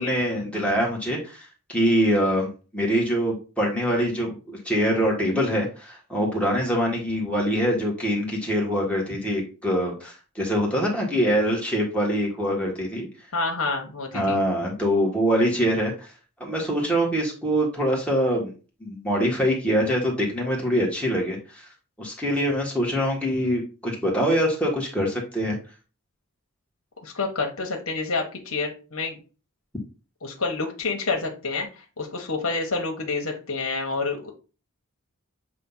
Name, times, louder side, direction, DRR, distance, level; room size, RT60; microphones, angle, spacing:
voice 1, 0.0-13.1 14.1-16.1 16.4-18.5 18.8-21.6 22.0-25.6, equal, 5° left, -3 dB, 1.6 m, -24 dB
voice 2, 13.3-14.4 27.0-29.2 30.2-34.3, left 3 dB, 75° left, 1 dB, 1.4 m, -28 dB
7.5 x 2.7 x 5.6 m, 0.34 s
head